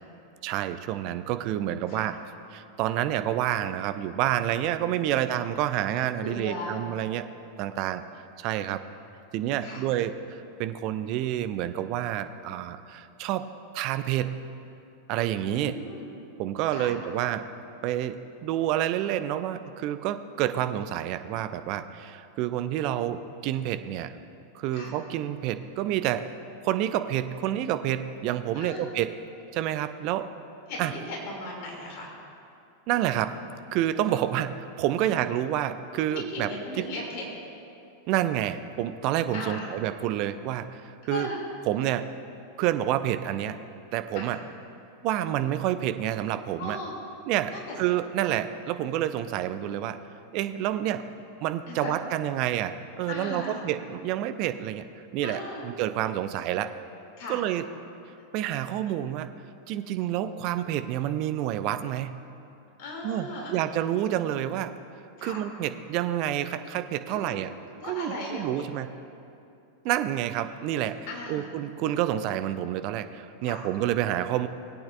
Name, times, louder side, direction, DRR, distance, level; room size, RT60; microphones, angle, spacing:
voice 1, 0.4-2.1 2.5-7.3 7.6-8.0 8.4-8.8 9.3-13.5 13.7-14.4 15.1-15.7 16.4-17.5 17.8-18.2 18.4-24.2 24.5-26.3 26.6-29.1 29.5-30.3 30.8-30.9 32.9-33.4 33.7-36.5 38.1-41.3 41.7-42.1 42.6-43.6 43.9-44.4 45.0-46.8 47.3-47.5 47.8-50.0 50.3-51.0 51.4-54.8 55.1-56.7 57.3-57.6 58.3-59.3 59.7-62.1 63.0-64.7 65.2-67.5 67.8-68.9 69.8-71.0 71.3-74.5, right 12 dB, 40° right, 10 dB, 0.5 m, -28 dB
voice 2, 4.8-5.2 6.2-6.8 9.6-9.9 15.5-16.1 16.7-17.0 24.7-25.0 28.5-28.8 30.7-32.1 35.0-35.2 36.1-37.2 39.3-39.7 41.1-41.4 44.1-44.4 46.6-47.0 47.5-47.8 51.7-51.9 53.1-53.6 55.2-55.6 57.2-57.4 62.8-63.6 65.2-65.4 67.1-67.4 67.7-68.6 71.1-71.6 73.4-73.6, left 2 dB, 45° left, -2 dB, 2.6 m, -37 dB
20.0 x 8.8 x 2.5 m, 2.7 s
figure-of-eight pair, 90°, 0 cm